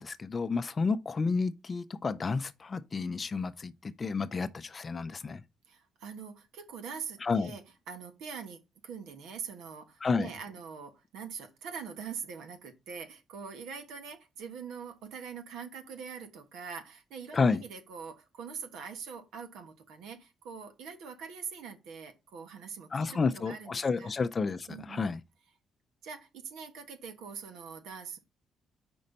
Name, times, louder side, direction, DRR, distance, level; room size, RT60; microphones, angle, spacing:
voice 1, 0.0-5.4 7.2-7.5 10.0-10.3 17.3-17.6 22.9-25.2, left 4 dB, 35° left, 0.5 m, -31 dB
voice 2, 5.7-24.1 24.7-25.1 26.0-28.2, right 6 dB, 85° right, 1.3 m, -43 dB
5.4 x 3.9 x 5.4 m
cardioid pair, 90°, 0 cm